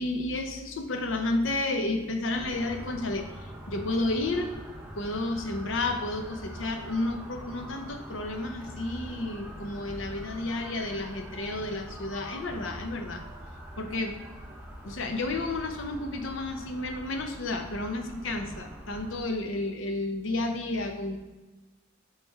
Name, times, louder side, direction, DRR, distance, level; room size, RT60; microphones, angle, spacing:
voice 1, 0.0-3.3 3.7-4.5 5.0-13.2 13.8-14.3 14.8-21.2, left 2 dB, 80° left, 6 dB, 0.8 m, -31 dB
sound 1, 2.3-19.2, equal, 5° right, 0.7 m, -43 dB
7.1 x 3.5 x 4.6 m, 1.2 s
head